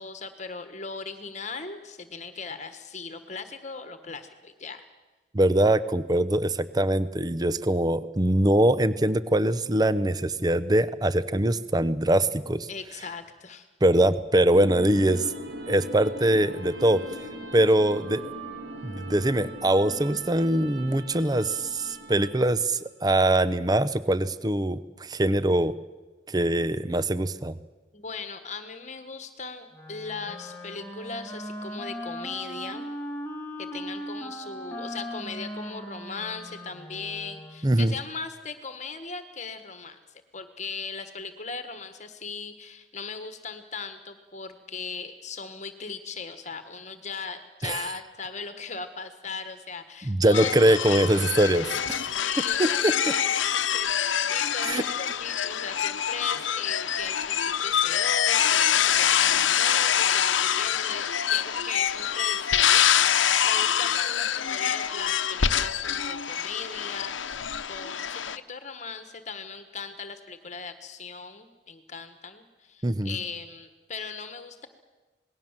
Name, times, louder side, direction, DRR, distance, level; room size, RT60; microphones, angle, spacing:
voice 1, 0.0-4.8 12.7-13.7 27.9-32.9 33.6-40.0 40.3-51.0 52.1-67.1 67.7-74.7, left 5 dB, 40° left, 9 dB, 1.4 m, -38 dB
voice 2, 5.3-12.7 13.8-15.3 15.7-17.0 17.5-18.3 18.8-25.7 26.3-27.5 37.6-37.9 47.6-47.8 50.0-52.1 52.6-52.9 54.6-54.8 72.8-73.2, right 1 dB, 20° right, 15 dB, 0.7 m, -23 dB
sound 1, 14.5-22.7, right 1 dB, 60° right, 2.5 m, -39 dB
Wind instrument woodwind instrument, 29.7-37.8, equal, 10° left, 2.4 m, -38 dB
sound 2, 50.3-68.4, left 9 dB, 85° left, 0.9 m, -25 dB
27.5 x 20.0 x 7.4 m, 1.2 s
head